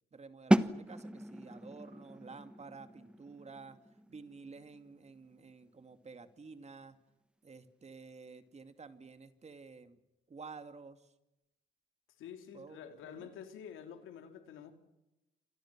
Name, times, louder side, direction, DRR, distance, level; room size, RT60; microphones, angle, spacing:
voice 1, 0.1-7.0 7.4-10.0 10.3-11.1 12.5-13.3, right 4 dB, 35° right, 2.4 m, -51 dB
sound 1, 0.5-6.2, right 1 dB, 5° right, 1.2 m, -35 dB
voice 2, 12.2-14.7, left 8 dB, 85° left, 3.4 m, -48 dB
29.0 x 25.5 x 6.1 m
cardioid pair, 90°, 20 cm